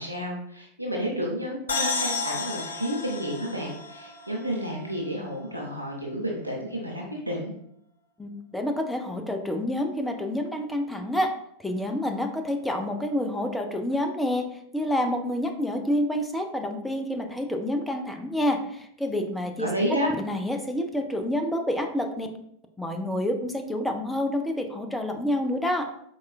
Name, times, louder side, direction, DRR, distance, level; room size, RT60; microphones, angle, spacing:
voice 1, 0.0-7.5 19.6-20.1, equal, 85° right, -1 dB, 0.6 m, -31 dB
sound 1, 1.7-5.2, left 4 dB, 70° left, 0.5 m, -32 dB
voice 2, 8.2-11.3 11.6-14.5 14.7-19.7 20.2-22.3 22.8-25.9, left 1 dB, 5° left, 5 dB, 0.5 m, -28 dB
4.2 x 2.3 x 2.3 m, 0.69 s
figure-of-eight pair, 90°, 0 cm